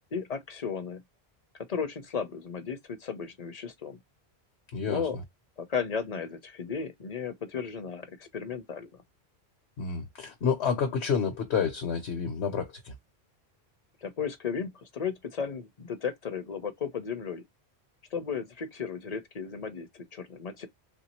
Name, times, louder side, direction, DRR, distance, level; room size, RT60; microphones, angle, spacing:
voice 1, 0.1-1.0 1.7-4.0 4.9-5.2 5.6-8.9 14.0-17.4 18.1-20.7, left 6 dB, 45° left, 0.7 m, -34 dB
voice 2, 4.7-5.1 9.8-12.9, left 6 dB, 80° left, 1.2 m, -29 dB
3.5 x 2.6 x 2.9 m
omnidirectional pair, 1.1 m